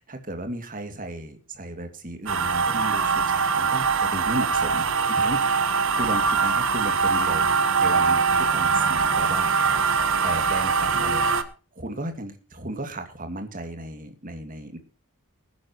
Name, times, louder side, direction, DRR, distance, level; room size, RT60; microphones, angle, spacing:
voice 1, 0.0-7.5 7.8-9.5 10.2-14.8, right 1 dB, 40° right, 7 dB, 2.4 m, -35 dB
sound 1, 2.3-11.4, right 5 dB, 60° right, 1.3 m, -22 dB
20.5 x 10.5 x 3.0 m, 0.35 s
head